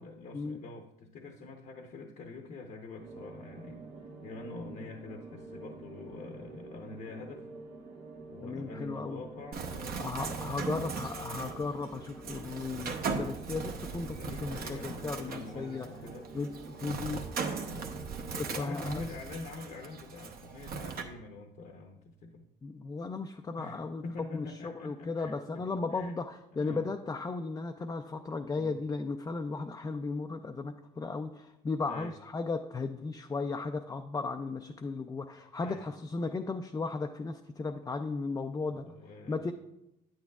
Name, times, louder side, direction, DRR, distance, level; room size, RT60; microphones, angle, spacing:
voice 1, 0.0-7.5 8.3-10.7 13.8-16.3 17.7-18.0 18.5-22.5 23.6-26.1 26.5-26.8 28.5-28.8 31.9-32.1 35.6-35.8 38.7-39.4, left 3 dB, 50° left, 3 dB, 0.8 m, -45 dB
sound 1, 3.0-18.8, right 3 dB, 90° right, 1.4 m, -48 dB
voice 2, 8.4-9.2 10.0-15.9 16.3-17.2 18.4-19.0 22.6-24.0 24.3-38.8 39.3-39.5, left 3 dB, 20° left, 5 dB, 0.4 m, -35 dB
Bird, 9.5-21.0, right 5 dB, 55° right, 0.9 m, -39 dB
8.9 x 8.8 x 2.3 m, 0.88 s
cardioid pair, 105°, 19 cm